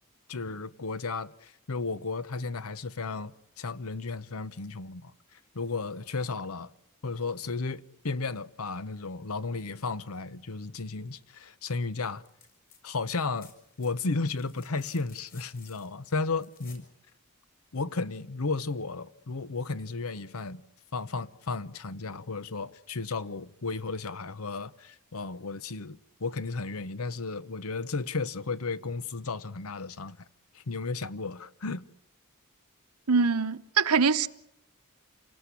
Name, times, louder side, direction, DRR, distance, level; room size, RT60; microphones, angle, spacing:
voice 1, 0.3-3.3 3.6-5.1 5.5-6.7 7.0-12.2 12.8-13.5 13.8-16.8 17.7-20.6 20.9-30.2 30.5-31.8, left 3 dB, 75° left, 0.9 m, -34 dB
sound 1, 12.2-12.8 13.1-16.9 18.5-18.6, left 6 dB, 40° left, 6.6 m, -56 dB
voice 2, 33.1-34.3, right 5 dB, 85° right, 1.0 m, -23 dB
28.0 x 18.5 x 8.4 m
head